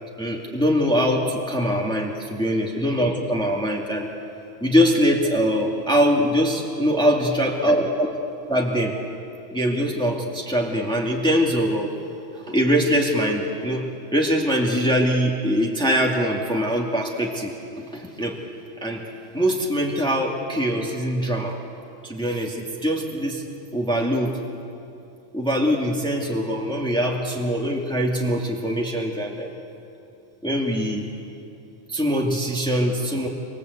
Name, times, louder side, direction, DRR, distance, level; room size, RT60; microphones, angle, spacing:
voice 1, 0.2-4.1 4.6-8.1 8.5-9.0 9.5-11.9 12.5-13.8 14.1-17.5 17.8-18.4 18.8-19.0 19.3-21.6 22.0-23.4 23.7-24.4 25.3-29.5 30.4-31.1 31.9-33.3, equal, 5° left, -1 dB, 2.3 m, -22 dB
26.5 x 25.0 x 8.2 m, 2.7 s
omnidirectional pair, 1.4 m